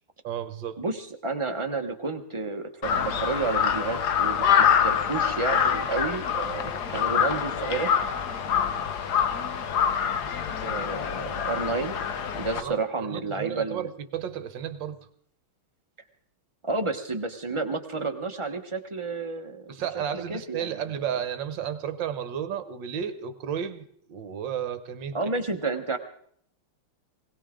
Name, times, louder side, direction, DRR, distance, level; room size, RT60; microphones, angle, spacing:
voice 1, 0.2-0.8 12.5-12.8 13.0-15.0 19.7-25.2, right 9 dB, 65° right, 12 dB, 1.6 m, -33 dB
voice 2, 0.8-7.9 10.6-12.0 12.3-13.9 16.6-19.7 20.1-20.9 25.1-26.0, right 3 dB, 25° right, 5 dB, 0.6 m, -31 dB
Crow, 2.8-12.6, left 8 dB, 55° left, 1.4 m, -25 dB
21.0 x 18.0 x 3.7 m, 0.63 s
omnidirectional pair, 2.3 m